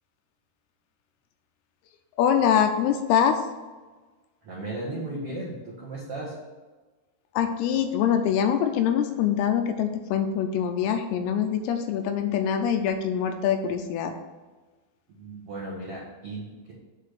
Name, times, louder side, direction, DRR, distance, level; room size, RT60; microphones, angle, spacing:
voice 1, 2.2-3.4 7.4-14.1, left 8 dB, 85° left, 6 dB, 2.4 m, -24 dB
voice 2, 4.4-6.4 15.1-16.7, right 2 dB, 75° right, -5 dB, 1.3 m, -36 dB
8.2 x 3.3 x 6.5 m, 1.3 s
omnidirectional pair, 4.8 m